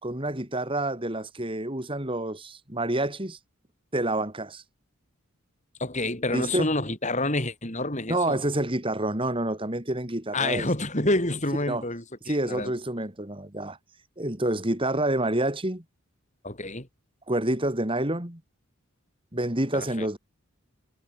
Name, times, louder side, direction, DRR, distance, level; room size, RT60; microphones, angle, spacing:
voice 1, 0.0-3.4 3.9-4.6 6.3-6.7 8.1-10.7 11.7-11.8 12.3-13.8 14.2-15.8 17.3-18.4 19.3-20.2, right 1 dB, 25° right, 2.6 m, -28 dB
voice 2, 5.8-8.4 10.3-12.7 16.4-16.9 19.7-20.1, left 2 dB, 35° left, 5.2 m, -28 dB
head